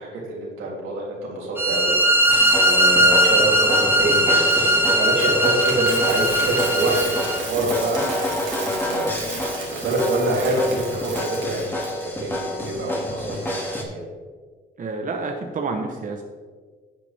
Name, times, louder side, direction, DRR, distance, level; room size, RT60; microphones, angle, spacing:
voice 1, 0.0-2.0 2.3-14.0, right 1 dB, 90° right, -4 dB, 3.1 m, -26 dB
sound 1, 1.6-7.4, right 1 dB, 10° right, 1.0 m, -19 dB
sound 2, 2.3-13.8, left 1 dB, 10° left, 2.3 m, -29 dB
Coin (dropping), 4.5-11.9, right 4 dB, 70° right, 2.5 m, -34 dB
voice 2, 4.6-5.0 14.8-16.2, right 3 dB, 40° right, 3 dB, 1.0 m, -30 dB
11.0 x 8.0 x 3.5 m, 1.5 s
cardioid pair, 90°, 20 cm